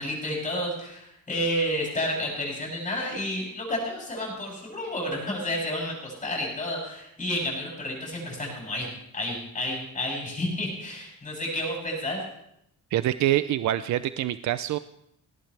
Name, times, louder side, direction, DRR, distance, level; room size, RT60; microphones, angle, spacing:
voice 1, 0.0-8.9 9.1-12.2, left 1 dB, 25° left, -2 dB, 7.9 m, -30 dB
voice 2, 12.9-14.8, right 13 dB, 65° right, 13 dB, 0.5 m, -25 dB
19.5 x 18.0 x 3.4 m, 0.76 s
cardioid pair, 125°, 31 cm